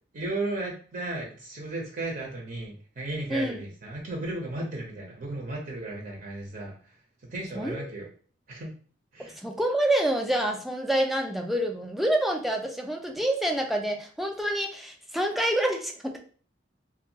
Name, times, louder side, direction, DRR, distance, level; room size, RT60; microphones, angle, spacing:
voice 1, 0.1-6.9 7.2-8.1 8.5-8.7 9.1-9.4, right 2 dB, 50° right, -1 dB, 0.6 m, -35 dB
voice 2, 3.3-3.6 7.5-7.9 9.2-16.2, right 1 dB, ahead, 2 dB, 0.3 m, -27 dB
2.6 x 2.2 x 2.7 m, 0.41 s
head